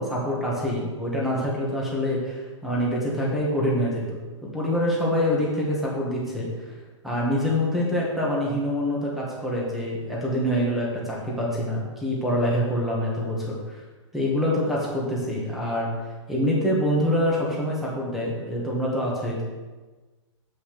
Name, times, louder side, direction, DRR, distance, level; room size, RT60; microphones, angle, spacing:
voice 1, 0.0-6.7 7.0-13.8 14.1-15.9 16.3-19.4, equal, ahead, -5 dB, 1.8 m, -25 dB
8.1 x 5.6 x 6.7 m, 1.3 s
hypercardioid pair, 165°, 16 cm